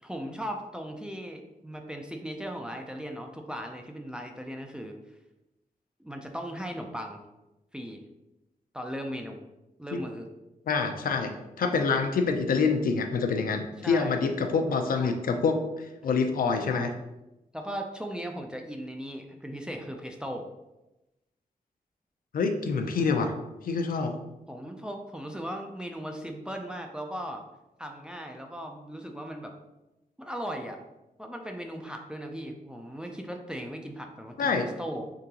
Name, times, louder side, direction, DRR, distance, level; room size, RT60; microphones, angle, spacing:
voice 1, 0.0-4.9 6.0-7.2 7.7-8.0 8.7-9.4 9.8-10.3 13.8-14.1 16.7-16.9 17.5-20.5 24.5-27.4 27.8-29.5 30.2-30.8 31.2-35.0, equal, 5° right, 3 dB, 0.3 m, -37 dB
voice 2, 10.7-16.9 22.3-23.3 23.6-24.2 34.4-34.7, left 4 dB, 70° left, 6 dB, 0.5 m, -26 dB
3.7 x 3.7 x 2.8 m, 0.96 s
wide cardioid pair, 160°, 15 cm